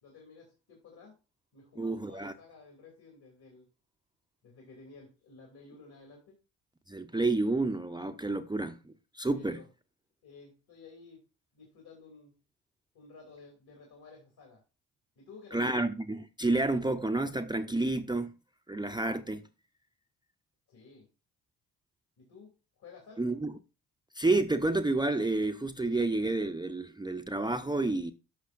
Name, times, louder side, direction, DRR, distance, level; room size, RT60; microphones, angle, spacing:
voice 1, 0.0-1.2 1.5-3.7 4.4-6.4 9.3-9.7 10.2-11.2 11.5-12.4 12.9-14.6 15.2-15.6 20.7-21.1 22.2-23.4, left 4 dB, 60° left, 2.6 m, -53 dB
voice 2, 1.8-2.3 6.9-9.6 15.5-18.3 18.7-19.5 23.2-23.5 24.1-28.1, right 2 dB, 10° right, 0.6 m, -30 dB
12.0 x 5.7 x 2.5 m
hypercardioid pair, 45°, 44 cm